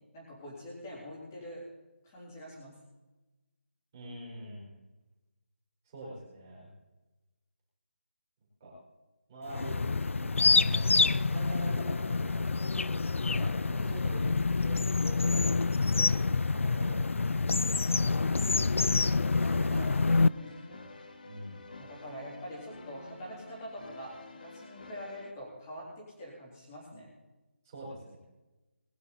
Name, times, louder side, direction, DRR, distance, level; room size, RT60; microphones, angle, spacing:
voice 1, 0.1-1.6 2.0-2.7 13.4-13.6 19.5-19.8 20.3-20.6 21.8-27.1, equal, 15° left, -4 dB, 3.6 m, -45 dB
voice 2, 3.9-4.7 5.8-6.7 8.6-8.7 9.3-9.8 10.1-11.0 11.3-12.4 12.8-18.7 19.4-20.9 21.2-21.6 27.6-28.2, right 1 dB, 15° right, -5 dB, 4.4 m, -45 dB
sound 1, 9.5-20.3, left 4 dB, 80° left, 0.5 m, -27 dB
sound 2, 18.7-25.3, left 3 dB, 40° left, 1.5 m, -49 dB
20.5 x 10.5 x 4.2 m, 1.1 s
figure-of-eight pair, 180°, 7 cm